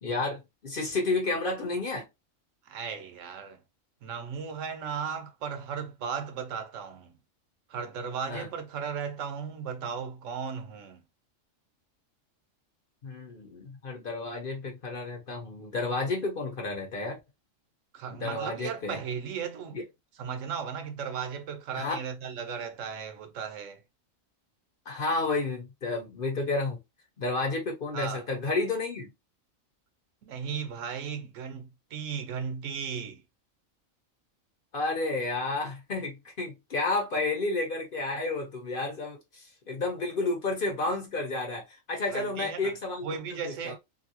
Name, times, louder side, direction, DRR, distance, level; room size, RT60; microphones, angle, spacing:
voice 1, 0.0-2.1 8.3-8.5 13.0-17.2 18.1-19.0 19.7-19.8 21.7-22.0 24.9-26.8 27.2-29.1 34.7-43.1 43.4-43.8, left 3 dB, 45° left, 0.9 m, -31 dB
voice 2, 2.7-3.6 4.0-7.1 7.7-11.0 17.9-19.8 20.2-23.8 27.9-28.2 30.2-33.2 42.1-42.7 43.0-43.8, right 6 dB, 70° right, 0.9 m, -36 dB
2.7 x 2.6 x 2.8 m
omnidirectional pair, 1.4 m